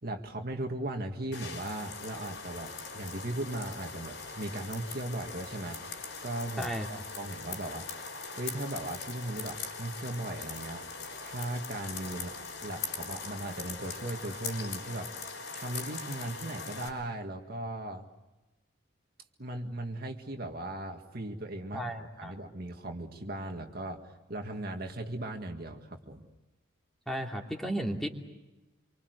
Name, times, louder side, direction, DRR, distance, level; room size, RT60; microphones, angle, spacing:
voice 1, 0.0-5.8 6.2-7.9 8.4-10.9 11.2-12.3 12.6-15.1 15.5-18.1 19.4-24.0 24.3-26.3, right 1 dB, 50° right, 3 dB, 2.0 m, -37 dB
sound 1, 1.3-16.9, left 5 dB, 65° left, 5.3 m, -41 dB
voice 2, 6.6-6.9 21.7-22.4 27.1-28.1, right 1 dB, ahead, 1 dB, 2.8 m, -34 dB
27.0 x 25.0 x 8.1 m, 1.1 s
head